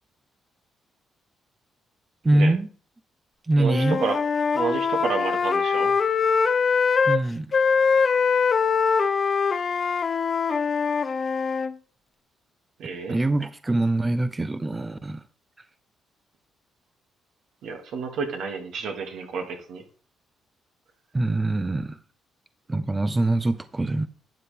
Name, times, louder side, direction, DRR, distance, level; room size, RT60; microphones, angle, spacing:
voice 1, 2.2-2.7 3.5-4.0 7.1-7.5 13.1-15.2 21.1-22.0 22.7-24.1, right 2 dB, 20° right, 0.7 m, -23 dB
voice 2, 3.6-4.2 4.5-5.9 12.8-13.2 17.6-19.8, right 5 dB, 75° right, 2.5 m, -30 dB
Wind instrument woodwind instrument, 3.7-7.2 7.5-11.7, left 5 dB, 40° left, 0.7 m, -23 dB
12.0 x 8.3 x 3.6 m
cardioid pair, 90°, 0 cm